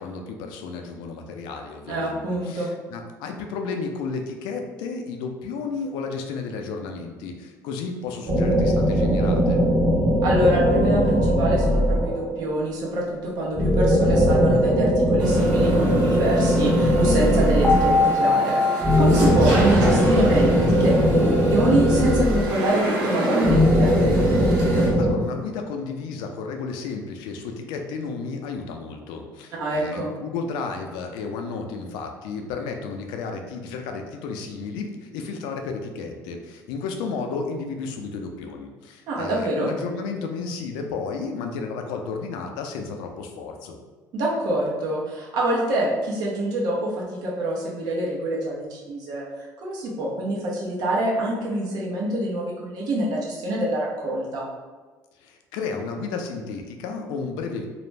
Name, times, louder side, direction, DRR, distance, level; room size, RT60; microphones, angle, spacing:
voice 1, 0.0-9.6 24.5-43.8 55.2-57.7, left 4 dB, 90° left, 3 dB, 0.4 m, -33 dB
voice 2, 1.9-2.7 10.2-23.9 29.6-30.1 39.1-39.7 44.1-49.2 49.6-54.5, right 1 dB, 65° right, -4 dB, 0.8 m, -25 dB
sound 1, 8.3-12.4 13.5-18.2 18.8-22.8 23.4-25.1, equal, 30° right, 0.9 m, -20 dB
sound 2, 10.4-12.0 17.6-21.0, left 3 dB, 10° left, 0.6 m, -25 dB
sound 3, 15.2-24.9, right 1 dB, 85° right, 1.0 m, -30 dB
2.4 x 2.1 x 3.2 m, 1.3 s
cardioid pair, 115°, 7 cm